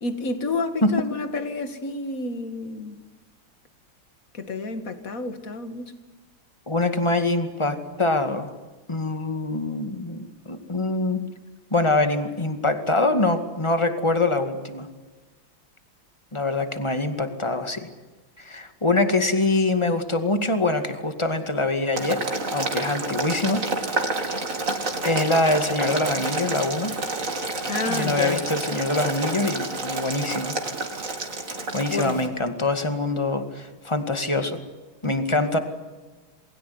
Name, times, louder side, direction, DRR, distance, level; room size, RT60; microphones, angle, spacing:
voice 1, 0.0-3.0 4.3-5.9 27.7-28.4 31.9-32.3 35.0-35.1, left 3 dB, 45° left, 2.3 m, -30 dB
voice 2, 6.7-8.5 8.9-11.2 11.7-14.9 16.3-17.9 18.4-22.2 22.5-24.2 25.0-26.9 27.8-30.6 31.7-34.6 35.0-35.6, left 2 dB, 15° left, 2.1 m, -24 dB
Boiling, 22.0-32.3, right 2 dB, 40° right, 3.1 m, -29 dB
28.5 x 21.5 x 9.7 m
omnidirectional pair, 2.2 m